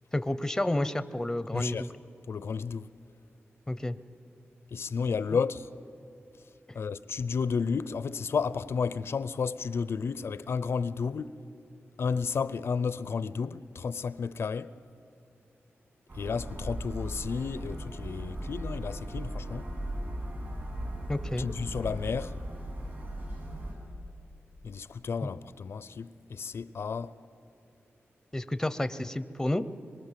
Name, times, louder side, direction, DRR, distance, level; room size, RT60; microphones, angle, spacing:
voice 1, 0.1-1.9 3.7-4.0 21.1-21.5 25.2-25.3 28.3-29.6, left 1 dB, 10° left, 0.7 m, -30 dB
voice 2, 1.5-1.9 2.3-2.9 4.7-5.7 6.7-11.3 12.0-14.7 16.1-19.7 21.4-22.4 24.6-27.2, left 5 dB, 65° left, 0.5 m, -32 dB
sound 1, 16.1-23.7, right 1 dB, 45° right, 7.6 m, -37 dB
24.5 x 23.0 x 7.5 m
wide cardioid pair, 130°, 5 cm